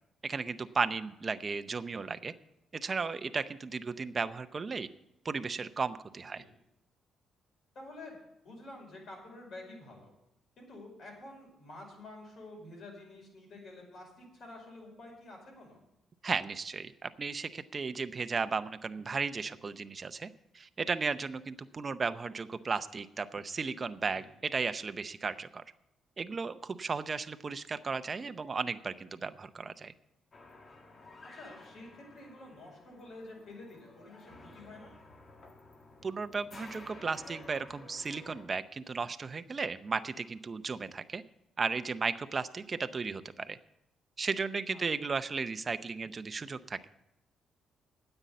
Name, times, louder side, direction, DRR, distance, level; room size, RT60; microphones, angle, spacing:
voice 1, 0.2-2.3 2.7-4.9 5.2-6.4 16.2-20.3 20.5-25.6 26.2-29.9 36.0-41.2 41.6-43.6 44.2-46.9, right 4 dB, 35° right, 10 dB, 0.6 m, -35 dB
voice 2, 7.8-8.2 8.4-10.1 10.6-15.8 24.1-24.3 31.3-34.9 44.7-44.8, left 2 dB, 60° left, 0 dB, 5.3 m, -49 dB
sound 1, 30.3-38.5, left 2 dB, 40° left, 1.6 m, -53 dB
9.8 x 7.9 x 8.3 m, 0.82 s
cardioid pair, 90°, 0 cm